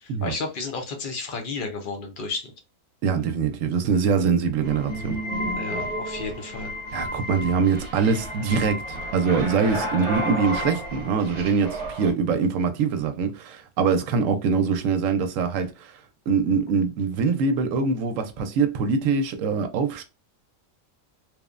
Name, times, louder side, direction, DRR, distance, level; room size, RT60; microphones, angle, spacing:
voice 1, 0.0-2.5 5.6-6.7, left 4 dB, 60° left, 0.5 m, -32 dB
voice 2, 3.0-5.2 6.9-15.9 16.3-20.0, right 5 dB, 75° right, 0.9 m, -23 dB
sound 1, 4.6-12.1, equal, 50° right, 0.8 m, -31 dB
3.0 x 2.0 x 2.3 m
omnidirectional pair, 1.4 m